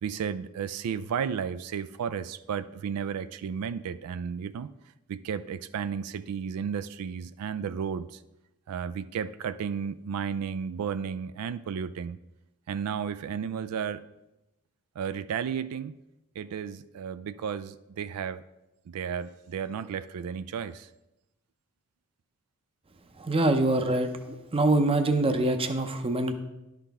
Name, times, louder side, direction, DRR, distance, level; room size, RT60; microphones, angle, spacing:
voice 1, 0.0-4.7 5.1-8.2 8.7-12.2 12.7-14.0 15.0-16.0 16.4-18.4 18.9-20.9, right 7 dB, 85° right, 13 dB, 0.3 m, -33 dB
voice 2, 23.2-24.1 24.5-26.3, right 2 dB, 25° right, 8 dB, 0.6 m, -24 dB
11.0 x 5.9 x 3.5 m, 0.94 s
head